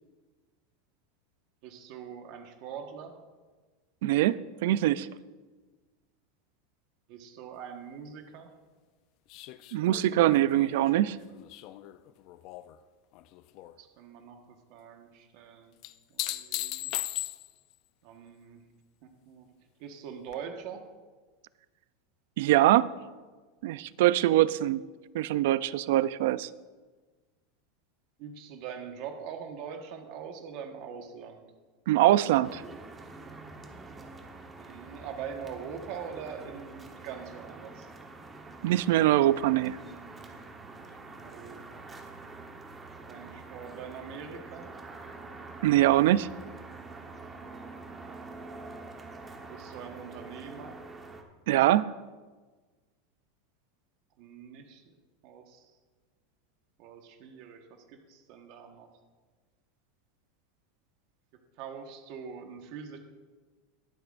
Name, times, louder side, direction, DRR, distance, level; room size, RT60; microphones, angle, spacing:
voice 1, 1.6-3.2 7.1-8.5 13.8-14.4 14.7-15.8 16.1-16.9 18.0-18.6 19.0-19.5 19.8-20.8 28.2-31.5 34.6-37.9 40.8-41.8 43.1-44.7 49.5-50.8 54.2-54.9 55.2-55.7 56.8-58.9 61.6-63.0, right 7 dB, 55° right, 4 dB, 1.3 m, -43 dB
voice 2, 4.0-5.1 9.7-11.2 22.4-22.9 23.6-24.8 25.1-26.5 31.9-32.6 38.6-39.8 45.6-46.3 51.5-51.9, right 14 dB, 70° right, 18 dB, 0.4 m, -23 dB
sound 1, 9.3-12.8 13.1-13.7 15.8-17.7 20.3-20.4, left 16 dB, 45° left, 0.4 m, -38 dB
sound 2, 32.4-51.2, right 3 dB, 15° right, 1.0 m, -46 dB
21.5 x 7.8 x 2.5 m, 1.3 s
supercardioid pair, 155°, 0 cm